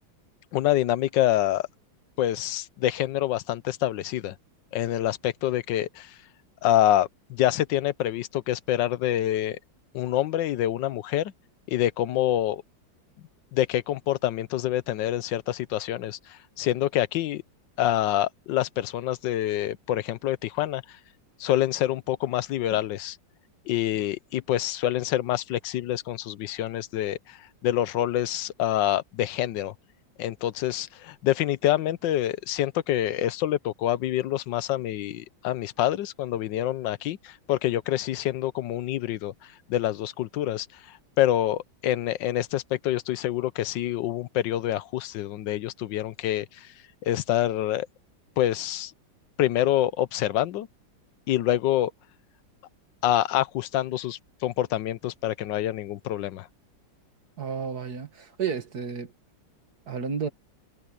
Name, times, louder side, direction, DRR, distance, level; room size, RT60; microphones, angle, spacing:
voice 1, 0.5-1.7 2.2-4.3 4.7-6.1 6.6-9.6 9.9-11.3 11.7-12.6 13.5-17.4 17.8-21.0 21.4-23.2 23.7-29.7 30.2-39.3 39.7-46.7 47.0-47.9 48.4-48.9 49.4-50.7 51.3-51.9 53.0-56.5, left 13 dB, 75° left, 1.4 m, -26 dB
voice 2, 57.4-59.1 59.9-60.3, right 6 dB, 55° right, 2.2 m, -31 dB
omnidirectional pair, 2.1 m